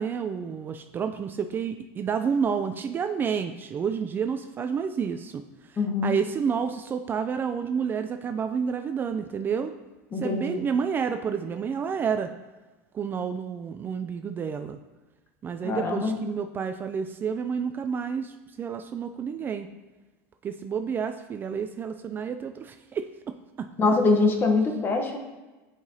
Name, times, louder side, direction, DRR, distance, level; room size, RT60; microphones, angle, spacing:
voice 1, 0.0-9.7 10.2-12.3 12.9-14.8 15.4-19.7 20.4-23.3, right 6 dB, 25° right, 7 dB, 0.3 m, -30 dB
voice 2, 5.8-6.1 10.1-10.6 15.6-16.2 23.8-25.2, left 3 dB, 25° left, 4 dB, 1.1 m, -23 dB
10.5 x 4.8 x 2.8 m, 1.2 s
supercardioid pair, 125°, 8 cm